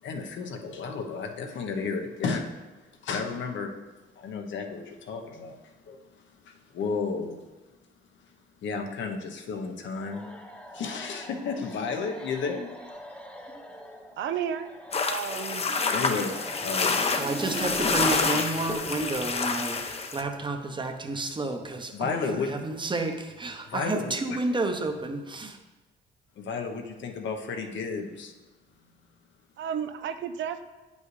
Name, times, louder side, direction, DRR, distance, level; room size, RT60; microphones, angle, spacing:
voice 1, 0.0-2.5 3.0-3.7 4.2-7.4 8.6-10.2 10.7-12.7 15.9-17.0 21.9-22.6 23.7-24.4 26.4-28.3, left 4 dB, 70° left, 4 dB, 0.9 m, -33 dB
sound 1, 9.9-20.2, equal, 5° left, 0.9 m, -40 dB
voice 2, 14.2-14.7 15.0-15.7 29.6-30.6, right 8 dB, 70° right, 9 dB, 0.6 m, -32 dB
sound 2, 14.9-20.2, left 4 dB, 30° left, 0.6 m, -28 dB
voice 3, 17.2-22.2 22.5-25.6, right 2 dB, 25° right, 6 dB, 0.8 m, -31 dB
9.0 x 5.4 x 3.2 m, 1.2 s
cardioid pair, 90°, 20 cm